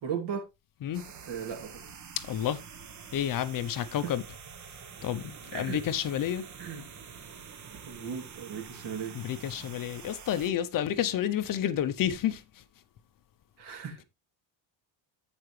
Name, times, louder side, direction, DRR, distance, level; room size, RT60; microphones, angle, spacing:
voice 1, 0.0-0.4 1.3-1.7 4.0-4.1 5.5-5.8 6.6-6.8 7.8-9.2 10.0-10.1 13.6-14.0, right 7 dB, 60° right, 2.9 m, -36 dB
sound 1, 0.9-10.5, right 6 dB, 40° right, 1.2 m, -47 dB
voice 2, 2.2-2.6 3.1-4.2 5.0-6.5 9.1-12.4, left 10 dB, 45° left, 0.7 m, -30 dB
14.5 x 4.9 x 3.2 m
cardioid pair, 170°, 46 cm